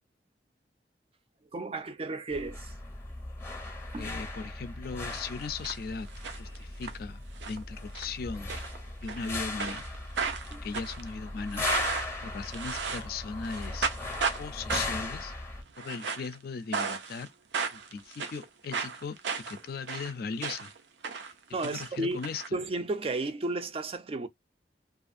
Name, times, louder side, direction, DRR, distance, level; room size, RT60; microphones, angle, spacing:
voice 1, 1.5-2.7 3.9-4.1 10.5-10.6 21.5-22.2 22.5-24.3, right 2 dB, 35° right, 0.4 m, -33 dB
sound 1, 2.3-15.6, left 2 dB, 15° left, 0.7 m, -38 dB
voice 2, 4.0-6.1 6.4-8.6 9.0-9.8 10.6-13.9 14.4-15.3 15.8-17.3 17.7-20.7 21.6-22.6, left 5 dB, 55° left, 0.4 m, -38 dB
sound 2, 5.1-5.8 6.1-6.9 7.4-7.6 7.9-8.1 8.5-9.3 9.6-13.2 13.4-14.4 14.7-15.1 15.7-16.4 16.7-17.3 17.5-20.8 21.0-22.5, right 5 dB, 90° right, 0.6 m, -34 dB
2.5 x 2.4 x 2.4 m
head